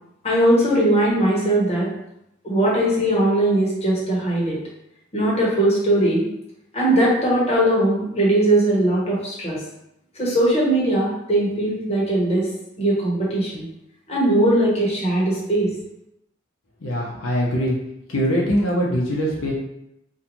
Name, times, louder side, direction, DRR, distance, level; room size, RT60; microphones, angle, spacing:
voice 1, 0.2-1.9 2.4-4.6 5.1-6.2 6.7-9.6 10.1-12.5 12.8-13.7 14.1-15.7, right 1 dB, 30° left, -6 dB, 0.9 m, -19 dB
voice 2, 16.8-17.7 18.1-19.5, equal, 80° left, -3 dB, 0.6 m, -22 dB
2.5 x 2.3 x 2.9 m, 0.82 s
head